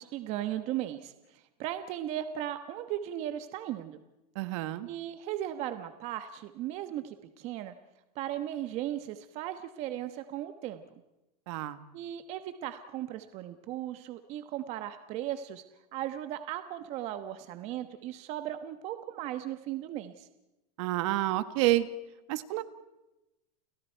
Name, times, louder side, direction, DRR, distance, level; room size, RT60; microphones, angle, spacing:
voice 1, 0.0-4.0 4.9-7.7 8.2-10.8 11.9-15.6 15.9-20.3, right 12 dB, 30° right, 9 dB, 1.2 m, -37 dB
voice 2, 4.3-4.9 11.5-11.8 20.8-21.9 22.3-22.6, right 16 dB, 50° right, 13 dB, 1.5 m, -29 dB
30.0 x 29.5 x 4.6 m, 0.98 s
supercardioid pair, 170°, 21 cm